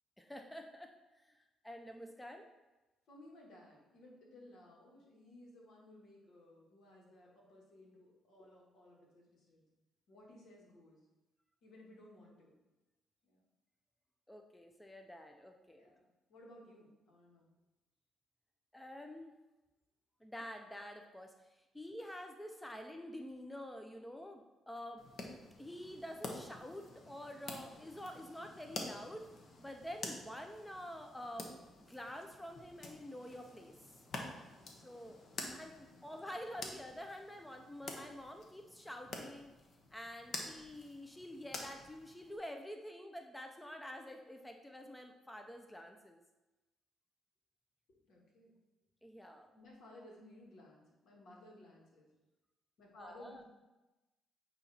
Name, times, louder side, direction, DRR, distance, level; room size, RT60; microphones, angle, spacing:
voice 1, 0.2-2.5 14.3-15.8 18.7-19.3 20.2-25.0 25.6-29.3 29.6-31.5 31.9-33.8 34.7-35.2 35.4-39.5 39.9-46.2 49.0-49.5 53.0-53.4, equal, 5° left, 4 dB, 0.5 m, -48 dB
voice 2, 3.1-9.7 10.1-11.1 11.6-12.6 13.2-13.4 15.7-17.5 35.9-36.1 47.9-48.5 49.5-52.1 52.8-53.4, left 1 dB, 70° left, -2 dB, 1.7 m, -58 dB
sound 1, 25.0-42.4, left 2 dB, 55° left, 1.0 m, -49 dB
8.6 x 2.9 x 4.1 m, 1.1 s
cardioid pair, 90°, 0 cm